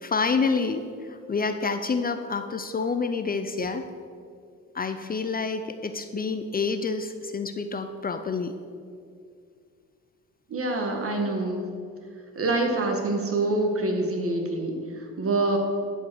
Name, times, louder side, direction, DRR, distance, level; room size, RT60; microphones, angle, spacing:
voice 1, 0.0-3.8 4.7-8.5, left 4 dB, 30° left, 8 dB, 0.6 m, -28 dB
voice 2, 10.5-11.6 12.4-15.6, right 2 dB, 45° right, 3 dB, 1.9 m, -26 dB
11.5 x 5.4 x 6.3 m, 2.3 s
cardioid pair, 90°, 30 cm